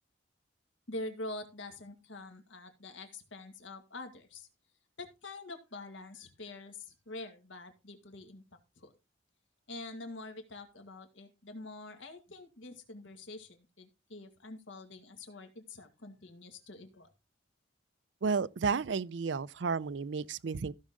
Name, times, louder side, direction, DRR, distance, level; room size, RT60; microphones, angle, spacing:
voice 1, 0.9-4.5 5.0-8.4 8.8-8.9 9.7-17.1, left 2 dB, 80° left, 2.0 m, -45 dB
voice 2, 18.2-20.7, right 5 dB, 70° right, 0.5 m, -32 dB
15.0 x 6.3 x 3.7 m
head